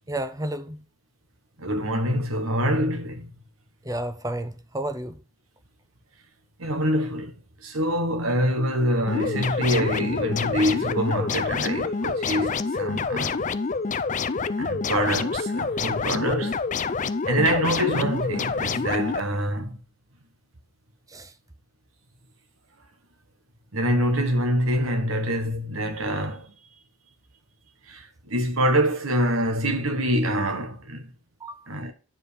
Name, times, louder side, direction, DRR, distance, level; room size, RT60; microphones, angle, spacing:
voice 1, 0.1-0.8 3.8-5.2 12.4-12.7 21.1-21.3 31.4-31.7, right 1 dB, 15° right, 0.7 m, -32 dB
voice 2, 1.6-3.3 6.6-7.3 7.6-13.4 14.6-16.6 17.3-19.8 23.7-26.5 27.9-31.1 31.7-31.9, equal, 80° right, 1.5 m, -25 dB
sound 1, 9.1-19.2, left 4 dB, 35° left, 0.4 m, -27 dB
9.2 x 5.2 x 5.1 m
head